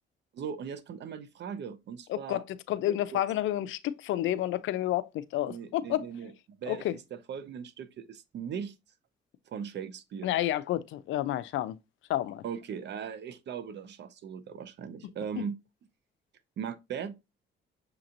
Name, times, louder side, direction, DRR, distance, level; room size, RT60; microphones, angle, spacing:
voice 1, 0.3-2.4 2.9-3.2 5.4-6.3 6.6-8.8 9.5-10.3 12.4-15.6 16.6-17.1, right 7 dB, 60° right, 0.7 m, -39 dB
voice 2, 2.1-6.1 6.7-6.9 10.2-11.8 12.1-12.4, left 13 dB, 80° left, 0.5 m, -30 dB
6.6 x 2.9 x 2.5 m
cardioid pair, 90°, 20 cm